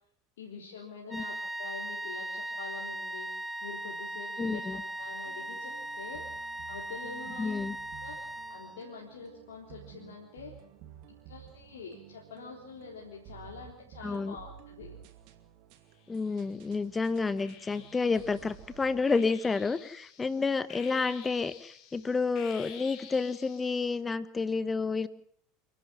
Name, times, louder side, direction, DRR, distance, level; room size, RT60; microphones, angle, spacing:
voice 1, 0.4-3.3 3.6-6.2 6.7-7.6 8.0-8.2 8.5-10.5 11.1-15.0, left 5 dB, 65° left, -2 dB, 3.9 m, -46 dB
sound 1, 1.1-9.0, right 1 dB, 5° right, 1.8 m, -39 dB
voice 2, 4.4-4.8 7.4-7.8 14.0-14.4 16.1-25.1, left 4 dB, 15° left, 16 dB, 1.3 m, -30 dB
sound 2, 5.0-19.2, right 10 dB, 50° right, 2.4 m, -53 dB
sound 3, 16.0-16.7 17.4-24.0, left 8 dB, 45° left, 3.0 m, -51 dB
30.0 x 11.5 x 7.9 m, 0.65 s
figure-of-eight pair, 75°, 0 cm